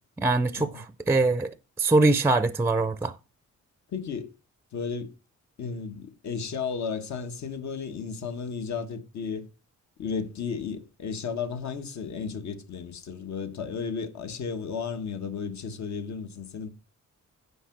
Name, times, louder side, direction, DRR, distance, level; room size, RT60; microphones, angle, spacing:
voice 1, 0.2-3.2, right 3 dB, 10° right, 0.4 m, -23 dB
voice 2, 3.9-4.3 4.7-5.1 5.6-9.5 10.0-16.7, left 6 dB, 70° left, 1.4 m, -34 dB
10.0 x 5.7 x 5.9 m
wide cardioid pair, 170°, 29 cm